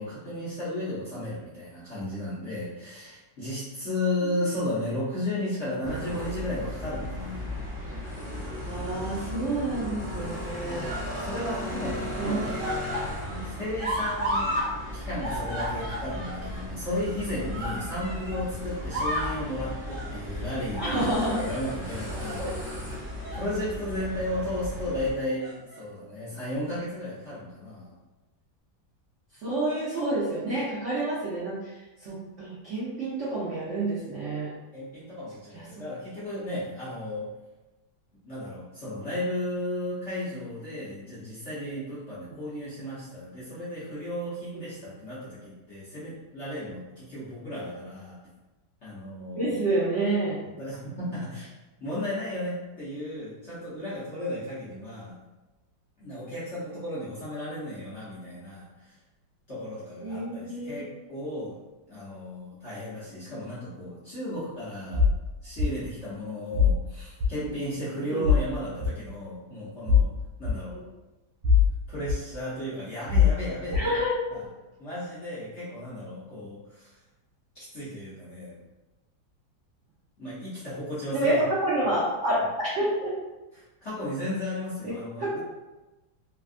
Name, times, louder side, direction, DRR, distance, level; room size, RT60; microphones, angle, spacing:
voice 1, 0.0-7.5 10.1-10.3 10.6-10.9 11.2-12.6 13.4-14.6 14.9-21.0 21.3-22.4 23.3-27.9 34.7-37.3 38.2-48.2 48.8-49.6 50.4-51.5 51.8-55.1 56.0-58.9 59.5-61.6 61.9-65.1 65.4-70.1 70.4-70.8 71.9-73.9 74.3-74.4 74.8-77.0 77.5-78.5 80.2-81.4 83.5-85.4, left 1 dB, 55° left, -11 dB, 0.8 m, -34 dB
sound 1, 5.8-25.1, left 1 dB, 10° right, 0.7 m, -36 dB
voice 2, 8.6-10.8 12.2-12.4 13.3-13.4 20.7-21.4 22.4-22.5 29.4-31.8 32.0-34.5 35.5-35.6 44.5-44.6 49.4-50.4 60.0-60.8 68.1-68.2 70.7-70.8 73.7-74.1 81.1-83.1 84.8-84.9 85.2-85.4, right 1 dB, 70° right, -9 dB, 0.7 m, -28 dB
sound 2, 8.8-9.4 10.3-11.6 11.9-14.7 15.0-18.4 18.8-19.4 19.8-20.1 20.7-21.8 22.1-22.3 23.0-23.5 23.9-24.0 25.1-25.8 26.7-26.8, equal, 50° right, 1.1 m, -34 dB
sound 3, 64.9-65.2 65.6-65.7 66.5-66.8 67.2-67.3 68.2-68.4 68.8-68.9 69.9-70.1 70.4-70.5 71.4-71.7 72.1-72.2 73.1-73.3 73.7-73.9, left 6 dB, 85° right, 1.4 m, -20 dB
3.3 x 2.3 x 2.5 m, 1.1 s
omnidirectional pair, 2.2 m